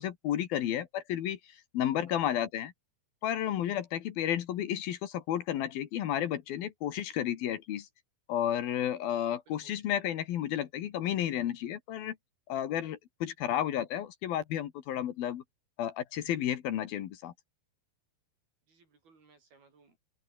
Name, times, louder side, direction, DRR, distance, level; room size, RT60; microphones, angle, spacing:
voice 1, 0.0-2.7 3.2-7.9 8.3-12.2 12.5-15.4 15.8-17.3, left 11 dB, 65° left, 3.2 m, -32 dB
voice 2, 18.7-20.0, right 4 dB, 65° right, 9.0 m, -62 dB
omnidirectional pair, 4.7 m